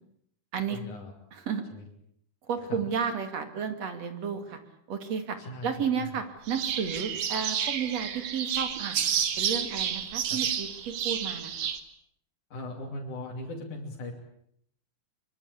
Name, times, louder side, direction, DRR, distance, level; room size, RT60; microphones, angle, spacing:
voice 1, 0.7-1.1 1.7-1.8 2.7-2.8 5.4-6.2 10.3-10.4 12.5-14.1, left 2 dB, 75° left, -2 dB, 4.5 m, -39 dB
voice 2, 1.3-1.6 2.5-4.6 4.9-5.4 5.6-11.5, right 7 dB, 60° right, 8 dB, 3.6 m, -32 dB
sound 1, 6.5-11.8, right 8 dB, 80° right, 3.3 m, -30 dB
25.0 x 24.5 x 8.5 m, 0.73 s
omnidirectional pair, 3.5 m